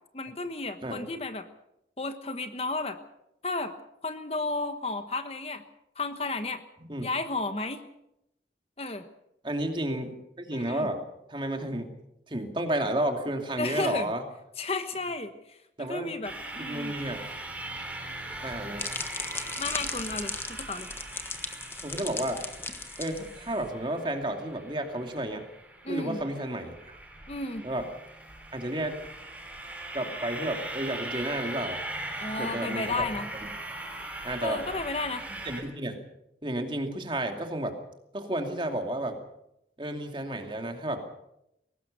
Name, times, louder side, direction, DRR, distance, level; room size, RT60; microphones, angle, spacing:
voice 1, 0.1-1.5 2.0-3.0 3.4-3.7 4.0-5.6 6.0-6.6 7.0-7.8 8.8-9.0 10.5-10.9 13.6-14.1 14.6-16.9 19.6-20.9 25.8-26.2 27.3-27.6 32.2-33.3 34.4-35.2, left 3 dB, 35° left, 8 dB, 1.2 m, -33 dB
voice 2, 9.4-11.0 11.3-12.0 12.3-14.2 15.8-16.1 16.6-17.2 18.4-18.8 21.8-22.4 23.0-25.4 25.9-27.0 27.6-27.9 28.5-29.0 29.9-31.8 32.4-33.1 34.2-34.6 35.4-36.0 36.4-37.8 38.1-39.2 39.8-41.0, right 1 dB, 25° right, 4 dB, 2.6 m, -32 dB
sound 1, 16.2-35.6, right 2 dB, 10° right, 6.3 m, -40 dB
sound 2, 18.3-23.7, left 3 dB, 15° left, 1.4 m, -37 dB
22.0 x 18.5 x 6.9 m, 0.83 s
head